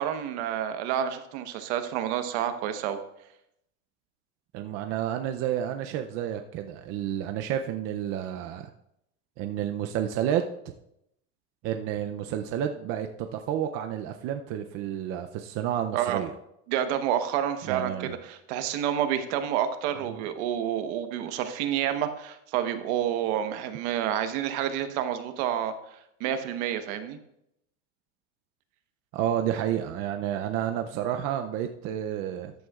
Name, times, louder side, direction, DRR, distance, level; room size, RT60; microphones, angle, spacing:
voice 1, 0.0-3.0 15.9-16.2 16.7-25.7 26.2-27.2, right 10 dB, 60° right, 8 dB, 1.1 m, -29 dB
voice 2, 4.5-8.7 9.4-10.7 11.6-16.3 17.7-18.2 29.1-32.5, right 10 dB, 40° right, 6 dB, 0.5 m, -30 dB
14.0 x 9.3 x 2.4 m, 0.79 s
cardioid pair, 165°, 37 cm